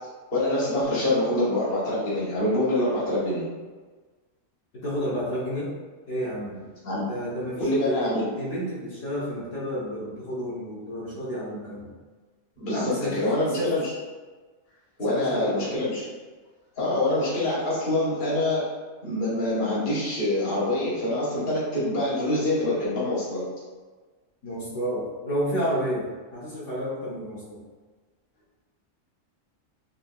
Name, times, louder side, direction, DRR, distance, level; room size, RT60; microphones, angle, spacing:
voice 1, 0.3-3.4 6.8-7.0 7.6-8.3 12.6-13.9 15.0-16.0 16.8-18.6 19.0-23.4, left 1 dB, 40° left, -8 dB, 1.2 m, -25 dB
voice 2, 4.8-5.7 6.1-6.7 7.0-11.9 12.7-13.1 13.5-13.8 15.1-15.7 24.4-27.6, equal, 70° left, -9 dB, 1.2 m, -31 dB
3.9 x 2.6 x 2.2 m, 1.4 s
omnidirectional pair, 1.4 m